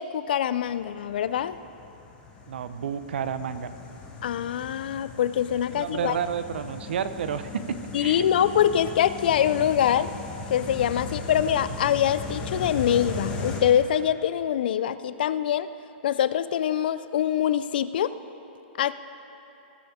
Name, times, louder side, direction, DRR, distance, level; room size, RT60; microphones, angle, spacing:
voice 1, 0.0-1.6 4.2-6.2 7.9-10.1 10.5-15.7 16.0-18.1 18.8-18.9, left 10 dB, 60° left, 14 dB, 0.4 m, -24 dB
sound 1, 0.7-13.6, left 3 dB, 20° left, 1.1 m, -37 dB
voice 2, 2.5-3.7 5.7-8.2, right 7 dB, 75° right, 12 dB, 0.6 m, -31 dB
18.5 x 7.7 x 3.6 m, 2.9 s
hypercardioid pair, 170°, 6 cm